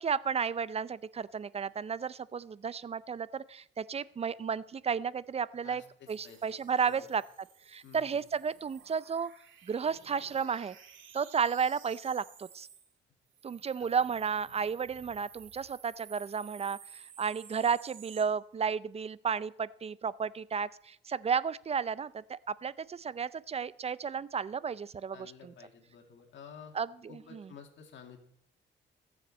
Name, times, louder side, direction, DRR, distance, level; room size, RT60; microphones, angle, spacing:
voice 1, 0.0-5.8 6.1-7.2 7.7-9.3 9.6-10.8 11.1-12.7 13.4-25.5 26.7-27.5, right 6 dB, 30° right, 19 dB, 0.4 m, -33 dB
voice 2, 5.6-6.6 6.8-7.1 7.8-8.3 13.8-13.9 25.1-26.7 27.1-28.2, left 7 dB, 70° left, 4 dB, 2.2 m, -52 dB
sound 1, 6.1-12.9 13.3-18.2, right 8 dB, 75° right, 2.1 m, -55 dB
20.5 x 7.2 x 4.2 m, 0.70 s
cardioid pair, 90°, 20 cm